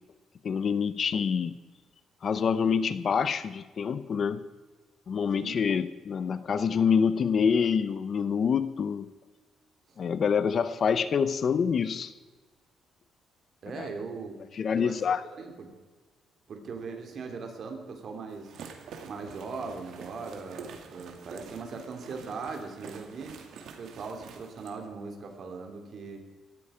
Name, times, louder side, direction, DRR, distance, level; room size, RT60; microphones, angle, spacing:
voice 1, 0.4-1.5 2.2-4.5 5.1-9.1 10.0-12.1 13.7-13.9 14.5-15.2, left 6 dB, 40° left, 14 dB, 0.7 m, -26 dB
voice 2, 13.6-14.4 14.7-15.0 15.2-15.7 16.5-18.5 19.0-23.4 23.8-26.2, right 4 dB, 45° right, 4 dB, 2.8 m, -39 dB
sound 1, 18.3-24.8, right 6 dB, 70° right, 2.1 m, -47 dB
17.5 x 13.0 x 5.0 m, 1.4 s
cardioid pair, 150°, 0 cm